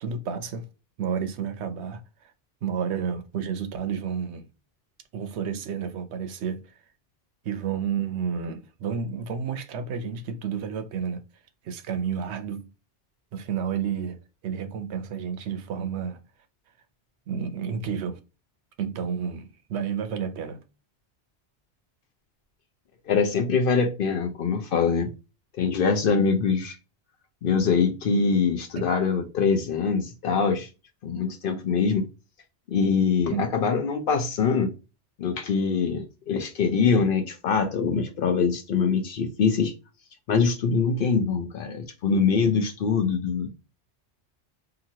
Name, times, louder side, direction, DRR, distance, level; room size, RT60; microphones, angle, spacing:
voice 1, 0.0-0.6 1.0-2.0 2.6-4.5 5.1-6.6 7.4-11.2 11.6-12.7 13.3-14.2 14.4-16.2 17.3-18.2 18.8-20.6 28.8-28.9 33.3-33.4, right 7 dB, 75° right, 0.8 m, -30 dB
voice 2, 23.1-25.1 25.6-26.8 27.4-30.7 31.0-32.0 32.7-34.7 35.2-39.7 40.3-43.5, left 5 dB, 60° left, 0.7 m, -23 dB
2.9 x 2.5 x 2.7 m
omnidirectional pair, 1.2 m